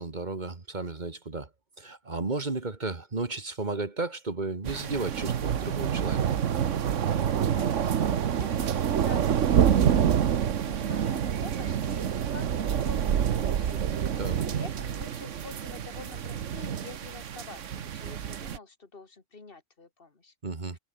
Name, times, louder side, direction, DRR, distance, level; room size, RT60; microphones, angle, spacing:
voice 1, 0.0-1.5 1.8-6.2 14.2-14.4 20.4-20.8, right 3 dB, 35° right, 1.9 m, -33 dB
sound 1, 4.7-18.6, right 8 dB, 70° right, 1.3 m, -27 dB
voice 2, 7.3-13.8 14.2-20.3, left 3 dB, 45° left, 2.4 m, -47 dB
omnidirectional pair, 1.3 m